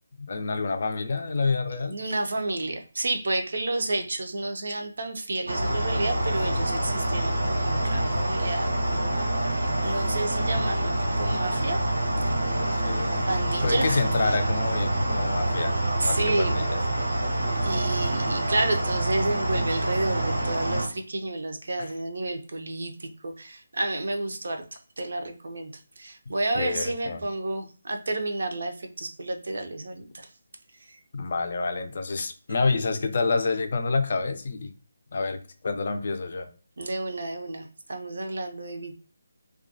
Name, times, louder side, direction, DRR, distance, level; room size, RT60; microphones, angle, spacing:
voice 1, 0.2-2.0 12.6-13.3 13.6-16.8 21.8-21.9 26.5-27.2 31.1-34.7 35.1-36.5, left 4 dB, 50° left, 0.4 m, -28 dB
voice 2, 1.9-11.8 12.4-14.4 16.0-16.6 17.5-24.6 25.0-30.3 30.8-31.0 36.8-39.0, right 2 dB, 65° right, 0.5 m, -31 dB
sound 1, 5.5-20.9, right 1 dB, 85° right, 0.8 m, -26 dB
2.3 x 2.2 x 2.6 m
figure-of-eight pair, 155°, 0 cm